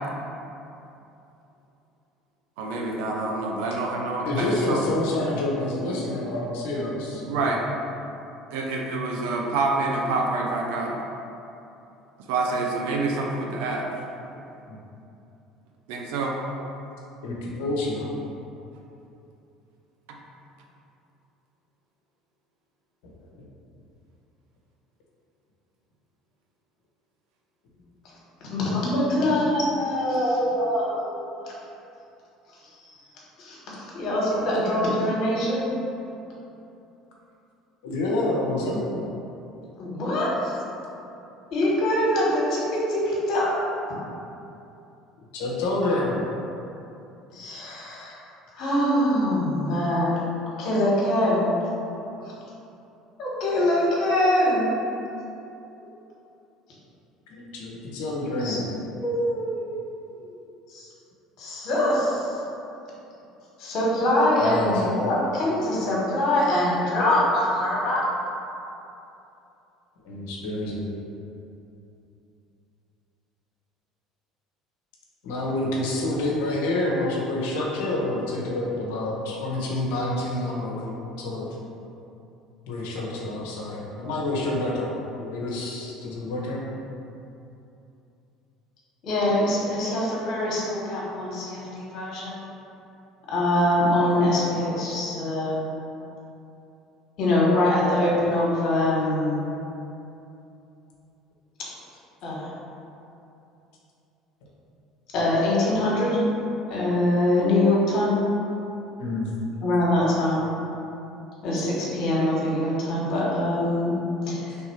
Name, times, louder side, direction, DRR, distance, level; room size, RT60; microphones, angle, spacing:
voice 1, 2.6-4.8 7.3-7.6 8.5-11.0 12.3-13.9 15.9-16.4 20.1-20.2, right 3 dB, 75° right, 0 dB, 0.5 m, -27 dB
voice 2, 4.2-7.5 14.7-14.8 17.2-18.1 23.0-23.4 37.8-39.0 45.3-46.2 55.2-55.3 57.3-58.7 64.4-64.9 70.0-70.9 75.2-81.5 82.6-86.7 109.0-109.3, left 2 dB, 75° left, -3 dB, 0.8 m, -28 dB
voice 3, 28.4-31.2 31.4-31.5 32.6-32.9 33.4-35.6 39.8-40.5 41.5-43.5 47.3-48.2 48.5-50.1 50.6-51.4 53.2-54.7 58.4-58.6 58.8-60.3 60.7-60.9 61.4-62.3 63.6-68.0 89.0-92.4 93.3-95.6 97.2-99.4 102.2-102.5 105.1-106.2 106.7-108.2 109.6-110.4 111.4-113.9 114.2-114.6, left 1 dB, 60° left, -5 dB, 1.4 m, -24 dB
3.3 x 2.9 x 4.5 m, 2.8 s
hypercardioid pair, 70°, 0 cm